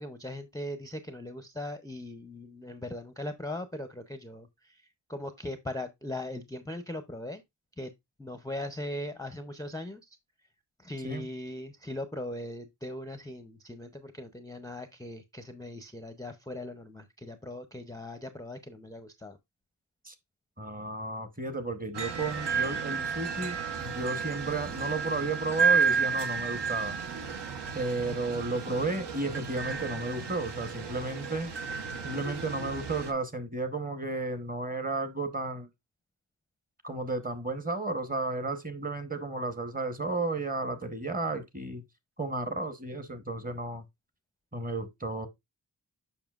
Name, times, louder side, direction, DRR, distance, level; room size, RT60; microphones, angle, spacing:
voice 1, 0.0-4.8 5.1-7.4 7.8-7.9 8.2-10.2 10.8-19.4, left 1 dB, 10° left, 0.5 m, -39 dB
voice 2, 20.6-27.0 27.7-31.5 32.0-35.7 36.8-41.8 42.2-43.8 44.5-45.3, right 2 dB, 20° right, 0.9 m, -33 dB
sound 1, 21.9-33.1, right 6 dB, 75° right, 0.9 m, -32 dB
7.0 x 5.7 x 2.3 m
wide cardioid pair, 95°, 42 cm